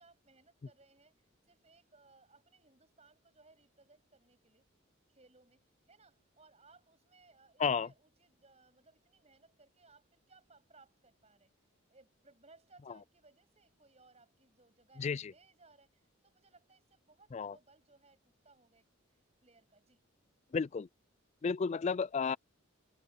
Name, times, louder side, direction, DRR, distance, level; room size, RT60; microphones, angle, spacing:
voice 1, 0.0-4.6 5.1-11.5 11.9-20.0, right 3 dB, 30° right, 7.4 m, -65 dB
voice 2, 15.0-15.3 17.3-17.5 20.5-20.9 21.4-22.4, left 5 dB, 35° left, 0.3 m, -32 dB
head